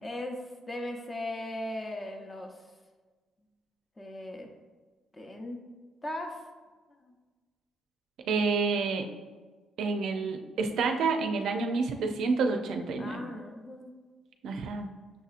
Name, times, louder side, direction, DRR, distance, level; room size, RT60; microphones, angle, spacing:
voice 1, 0.0-2.6 4.0-4.5 5.1-5.6 6.0-6.4 7.0-7.1 13.0-13.9, left 1 dB, 25° left, 3 dB, 0.6 m, -38 dB
voice 2, 8.3-9.0 9.8-13.3 14.4-14.9, right 4 dB, 75° right, 4 dB, 0.4 m, -29 dB
6.3 x 2.8 x 2.5 m, 1.4 s
cardioid pair, 90°, 0 cm